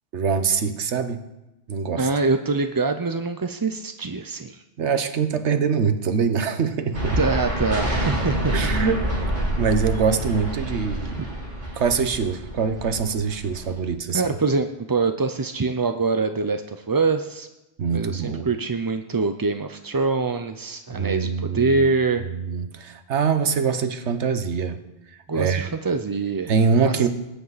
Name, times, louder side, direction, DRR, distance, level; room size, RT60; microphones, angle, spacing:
voice 1, 0.1-1.2 1.7-2.1 4.8-7.2 8.5-9.1 9.4-11.3 11.8-14.2 17.8-18.5 20.9-21.8 22.3-24.8 25.3-25.7 26.5-27.1, right 6 dB, 85° right, 10 dB, 1.3 m, -24 dB
voice 2, 2.0-4.6 7.2-8.5 14.1-17.5 17.9-22.2 25.3-26.5 26.8-27.1, right 4 dB, 30° right, 7 dB, 0.4 m, -24 dB
sound 1, 6.9-13.9, right 1 dB, 50° right, 4.9 m, -27 dB
20.0 x 10.5 x 4.1 m, 0.95 s
omnidirectional pair, 1.1 m